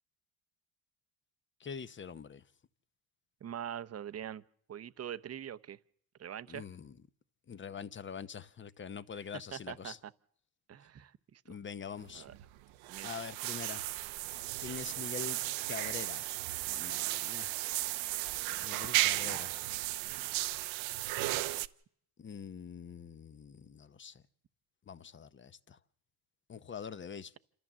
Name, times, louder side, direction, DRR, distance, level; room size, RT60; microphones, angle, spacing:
voice 1, 1.6-2.4 6.5-7.0 7.5-10.0 11.4-12.3 13.0-14.0 14.6-15.4 15.7-16.4 16.6-17.6 17.8-18.0 18.6-19.6 22.2-24.2 24.9-25.8 26.5-27.4, left 6 dB, 25° left, 0.9 m, -44 dB
voice 2, 3.4-4.4 4.7-5.8 6.2-6.6 9.1-9.2 9.5-9.9 10.7-11.6 12.1-12.3 12.9-13.1 19.2-19.4, right 9 dB, 30° right, 0.8 m, -43 dB
sound 1, 12.0-21.7, right 17 dB, 75° right, 0.9 m, -35 dB
27.5 x 14.0 x 7.4 m
cardioid pair, 110°, 47 cm